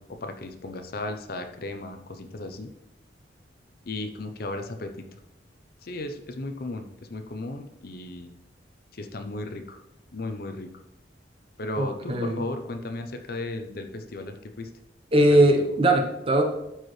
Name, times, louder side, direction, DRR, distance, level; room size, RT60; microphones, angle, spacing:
voice 1, 0.0-2.7 3.8-5.1 5.8-8.3 8.9-9.8 10.1-10.7 11.6-14.7 15.3-15.7, left 2 dB, 55° left, 7 dB, 0.7 m, -35 dB
voice 2, 11.8-12.4 15.1-16.4, right 1 dB, 30° right, 3 dB, 1.0 m, -20 dB
12.5 x 4.6 x 3.2 m, 0.86 s
head